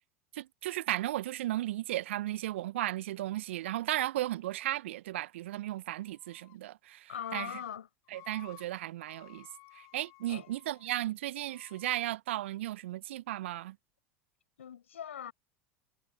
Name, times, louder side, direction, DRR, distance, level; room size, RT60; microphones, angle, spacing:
voice 1, 0.3-7.5 8.1-9.5 9.7-13.7, right 15 dB, 65° right, 1.4 m, -35 dB
Screaming, 6.0-6.6 7.1-7.8 8.1-8.7 9.0-10.9 11.4-12.1, left 21 dB, 50° left, 4.9 m, -55 dB
voice 2, 7.1-7.9 10.3-10.5 14.6-15.3, left 9 dB, 75° left, 5.4 m, -41 dB
figure-of-eight pair, 75°, 7 cm